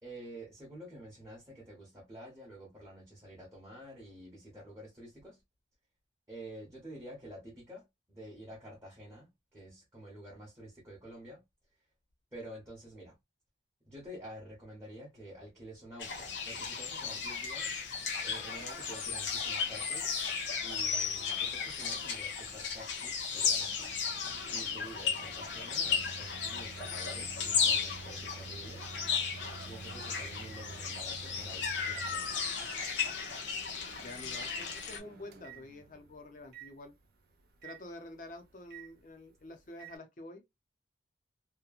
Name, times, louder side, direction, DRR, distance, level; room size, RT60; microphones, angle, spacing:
voice 1, 0.0-5.4 6.3-11.4 12.3-13.1 13.8-17.8 18.2-20.2 20.6-23.9 24.5-28.9 29.7-32.3, right 1 dB, 15° right, 1.0 m, -49 dB
sound 1, 16.0-35.0, left 6 dB, 75° left, 0.8 m, -35 dB
Microwave oven, 23.5-40.0, right 4 dB, 55° right, 0.4 m, -51 dB
voice 2, 34.0-37.0 37.6-40.4, left 2 dB, 45° left, 0.6 m, -48 dB
2.9 x 2.2 x 2.4 m
head